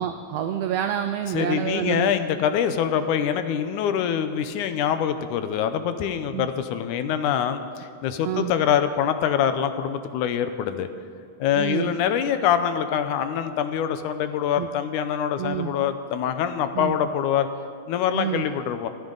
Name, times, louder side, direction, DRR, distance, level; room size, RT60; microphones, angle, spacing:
voice 1, 0.0-2.1 6.3-6.5 7.1-7.2 8.2-8.5 11.5-11.9 14.6-14.7 15.4-15.7 16.7-17.0 18.1-18.5, right 10 dB, 85° right, 7 dB, 1.4 m, -28 dB
voice 2, 1.3-10.9 11.4-17.5 17.9-18.9, left 9 dB, 85° left, 10 dB, 2.2 m, -24 dB
23.0 x 13.0 x 3.9 m, 2.4 s
omnidirectional pair, 3.5 m